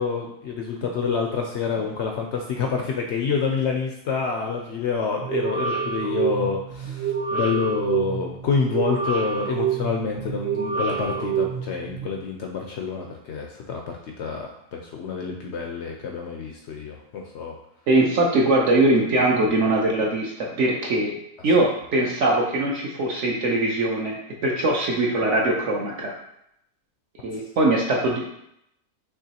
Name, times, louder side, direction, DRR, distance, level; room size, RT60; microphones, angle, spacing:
voice 1, 0.0-17.6, left 5 dB, 70° left, 1 dB, 0.6 m, -27 dB
sound 1, 5.2-12.1, right 7 dB, 85° right, 2.1 m, -27 dB
voice 2, 17.9-21.2 21.4-26.1 27.2-28.3, right 2 dB, 60° right, -1 dB, 0.8 m, -21 dB
6.0 x 3.0 x 2.8 m, 0.76 s
omnidirectional pair, 1.7 m